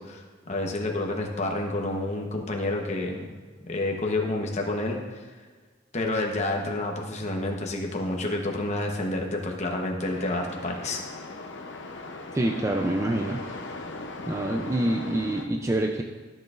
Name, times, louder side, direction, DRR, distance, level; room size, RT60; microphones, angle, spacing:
voice 1, 0.0-3.4 3.7-5.2 5.9-11.0, left 2 dB, 35° left, 1 dB, 1.0 m, -29 dB
sound 1, 10.0-15.5, left 2 dB, 70° left, 0.7 m, -39 dB
voice 2, 12.3-13.4 14.3-16.0, right 1 dB, 15° right, 2 dB, 0.4 m, -26 dB
13.5 x 6.4 x 2.5 m, 1.4 s
head